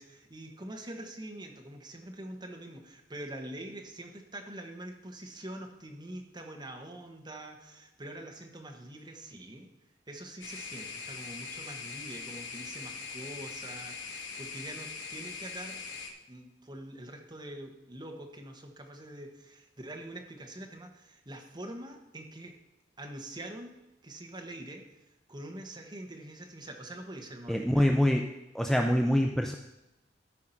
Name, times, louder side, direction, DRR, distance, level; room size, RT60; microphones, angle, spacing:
voice 1, 0.0-9.7 10.1-16.0 16.3-22.5 23.0-23.8 24.0-24.8 25.3-28.1, right 1 dB, 25° right, 2 dB, 1.4 m, -44 dB
sound 1, 10.4-16.1, left 4 dB, 85° left, 1.6 m, -41 dB
voice 2, 27.5-28.3 28.5-29.6, equal, ahead, 3 dB, 0.5 m, -25 dB
13.0 x 4.8 x 5.7 m, 0.92 s
head